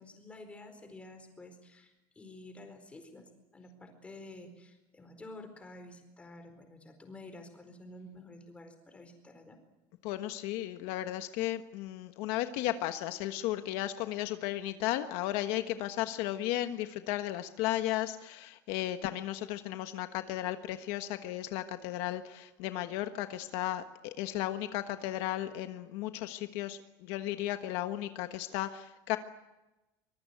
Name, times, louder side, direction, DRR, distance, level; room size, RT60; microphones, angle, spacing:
voice 1, 0.0-9.6, left 2 dB, 15° left, 7 dB, 4.5 m, -50 dB
voice 2, 10.0-29.2, left 14 dB, 70° left, 8 dB, 1.4 m, -35 dB
24.5 x 21.5 x 9.4 m, 1.0 s
cardioid pair, 160°, 10 cm